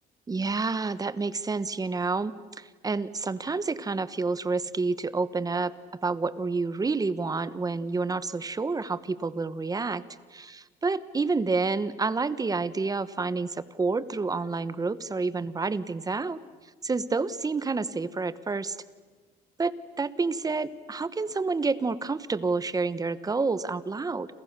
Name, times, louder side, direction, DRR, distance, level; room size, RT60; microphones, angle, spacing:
voice 1, 0.3-5.7 6.0-10.0 10.3-16.4 16.8-18.8 19.6-24.3, right 4 dB, 20° right, 15 dB, 1.1 m, -29 dB
29.0 x 27.5 x 6.8 m, 1.4 s
cardioid pair, 110°, 17 cm